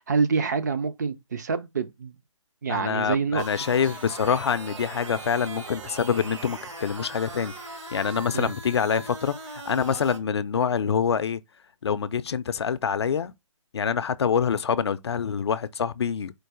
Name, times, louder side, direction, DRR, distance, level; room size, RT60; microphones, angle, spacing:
voice 1, 0.0-2.1 2.6-3.5 8.3-8.5, right 5 dB, 30° right, 0.4 m, -26 dB
voice 2, 2.7-7.5 7.9-11.4 11.8-13.3 13.7-16.3, left 7 dB, 50° left, 0.4 m, -26 dB
sound 1, 3.4-10.2, right 3 dB, 60° right, 1.5 m, -40 dB
4.5 x 2.5 x 4.6 m
hypercardioid pair, 160°, 17 cm